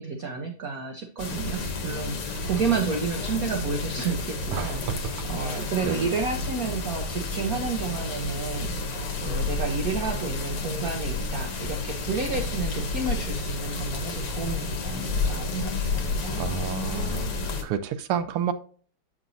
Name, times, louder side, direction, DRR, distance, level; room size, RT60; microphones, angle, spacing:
voice 1, 0.0-4.8 5.2-8.9 9.2-16.4, right 5 dB, 60° right, 4 dB, 0.9 m, -31 dB
sound 1, 1.2-17.6, left 3 dB, 60° left, 1.6 m, -30 dB
voice 2, 4.5-5.0 5.4-6.1 16.4-17.3 17.6-18.5, right 8 dB, 85° right, 10 dB, 1.6 m, -30 dB
8.1 x 5.9 x 2.6 m, 0.42 s
omnidirectional pair, 2.4 m